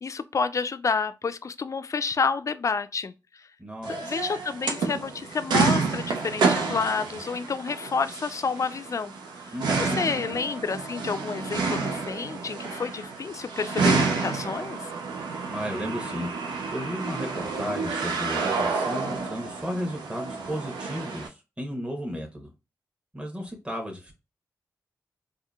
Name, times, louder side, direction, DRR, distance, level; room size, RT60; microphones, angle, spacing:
voice 1, 0.0-3.1 3.9-9.1 9.8-14.9, left 5 dB, 45° left, 0.3 m, -29 dB
voice 2, 3.6-4.0 9.5-10.3 15.5-22.5 23.1-24.1, equal, 15° right, 0.9 m, -34 dB
sound 1, 3.8-21.3, right 4 dB, 90° right, 0.5 m, -29 dB
3.7 x 2.2 x 2.3 m
cardioid pair, 40°, 7 cm